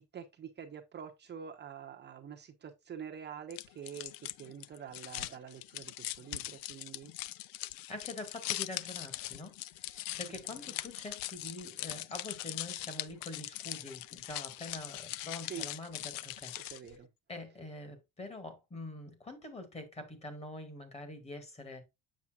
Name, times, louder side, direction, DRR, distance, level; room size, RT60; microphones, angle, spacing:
voice 1, 0.0-4.1 4.4-7.1 15.4-15.7 16.6-17.1, right 8 dB, 30° right, 0.9 m, -46 dB
sound 1, 3.5-16.9, left 16 dB, 70° left, 0.6 m, -41 dB
voice 2, 7.9-16.8 17.3-21.9, left 2 dB, 15° left, 1.9 m, -45 dB
7.3 x 7.0 x 2.4 m
cardioid pair, 165°, 36 cm